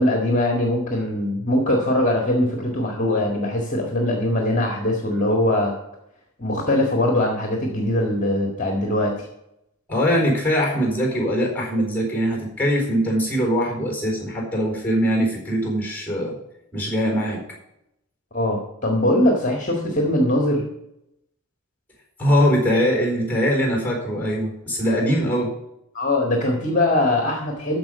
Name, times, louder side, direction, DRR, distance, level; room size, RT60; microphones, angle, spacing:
voice 1, 0.0-5.7 6.4-9.3 18.3-20.6 25.9-27.8, left 1 dB, 35° left, 1 dB, 1.8 m, -21 dB
voice 2, 9.9-16.3 16.7-17.4 22.2-25.5, equal, 5° left, 1 dB, 4.2 m, -22 dB
14.0 x 5.1 x 7.5 m, 0.83 s
head